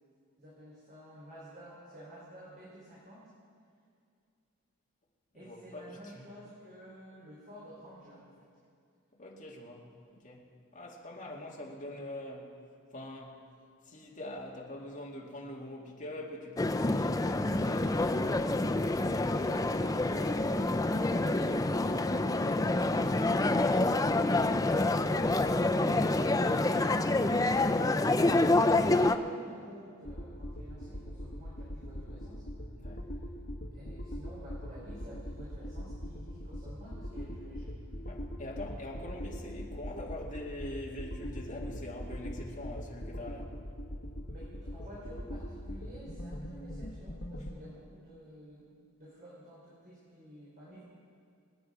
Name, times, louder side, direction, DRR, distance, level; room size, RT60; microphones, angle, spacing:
voice 1, 0.4-3.3 5.3-8.5 11.2-11.5 19.1-22.5 24.0-32.5 33.7-37.9 44.3-48.7 49.0-50.8, right 1 dB, 40° right, -7 dB, 3.8 m, -51 dB
voice 2, 5.4-6.2 9.2-10.5 10.7-12.5 12.9-13.4 13.8-18.0 22.8-23.2 32.8-33.1 38.1-43.6, left 1 dB, 35° left, -2 dB, 2.3 m, -44 dB
sound 1, 16.6-29.1, left 2 dB, 15° left, 0.4 m, -27 dB
sound 2, 30.0-47.5, equal, 55° left, 1.7 m, -42 dB
26.0 x 9.2 x 4.9 m, 2.4 s
head